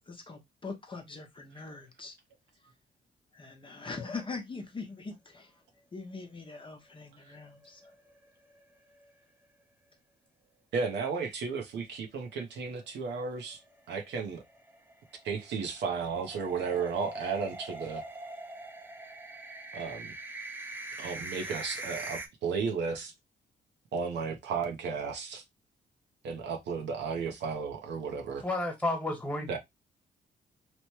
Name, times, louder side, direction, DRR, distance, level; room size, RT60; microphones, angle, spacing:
voice 1, 0.1-2.1 2.6-2.7 3.3-5.6 5.9-7.9, left 4 dB, 30° left, 0.7 m, -42 dB
sound 1, 7.3-8.2 8.6-8.7 9.0-9.1 13.2-22.3, right 2 dB, 10° right, 0.6 m, -43 dB
voice 2, 10.7-13.6 13.9-14.4 15.2-18.0 19.7-20.1 21.0-23.1 23.9-25.4 26.2-28.4 29.5-29.6, right 5 dB, 80° right, 0.7 m, -34 dB
voice 3, 28.4-29.6, left 2 dB, 10° left, 1.3 m, -31 dB
3.0 x 2.1 x 2.9 m
cardioid pair, 75°, 18 cm